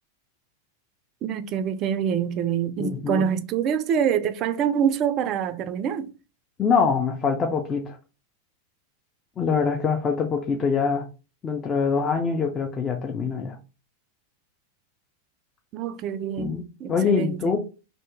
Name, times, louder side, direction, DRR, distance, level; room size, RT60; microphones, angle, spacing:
voice 1, 1.2-6.1 15.7-17.5, right 8 dB, 35° right, 0.3 m, -26 dB
voice 2, 2.8-3.3 6.6-8.0 9.4-11.1 11.4-13.6 16.4-17.6, left 5 dB, 25° left, 0.5 m, -24 dB
2.7 x 2.5 x 3.4 m
figure-of-eight pair, 90°, 0 cm